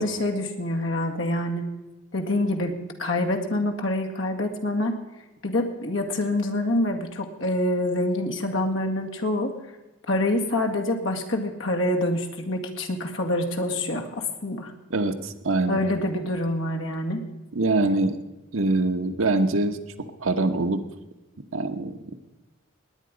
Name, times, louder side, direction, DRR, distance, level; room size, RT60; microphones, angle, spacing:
voice 1, 0.0-1.6 2.1-2.7 3.0-5.0 5.4-9.5 10.1-14.7 15.7-17.2, left 1 dB, 70° left, 2 dB, 2.0 m, -26 dB
voice 2, 14.9-15.8 17.5-18.2 18.5-20.9 21.5-22.2, right 2 dB, 85° right, 7 dB, 1.1 m, -24 dB
19.5 x 9.6 x 5.1 m, 1.1 s
head